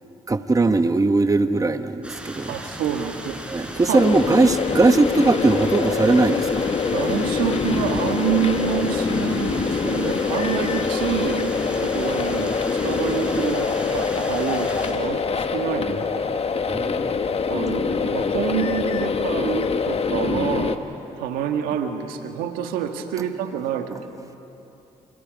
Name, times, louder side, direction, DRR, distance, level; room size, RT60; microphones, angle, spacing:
voice 1, 0.3-2.5 3.5-6.6 16.7-17.1, right 3 dB, 25° right, 10 dB, 1.1 m, -20 dB
sound 1, 2.0-14.9, equal, 10° right, 5.3 m, -36 dB
voice 2, 2.5-4.0 6.9-11.5 11.8-16.3 17.5-20.8 21.2-24.3, right 9 dB, 85° right, 6 dB, 1.6 m, -27 dB
sound 2, 3.9-20.8, left 5 dB, 45° left, 1.4 m, -24 dB
28.5 x 28.0 x 5.3 m, 2.9 s
supercardioid pair, 55°, 15 cm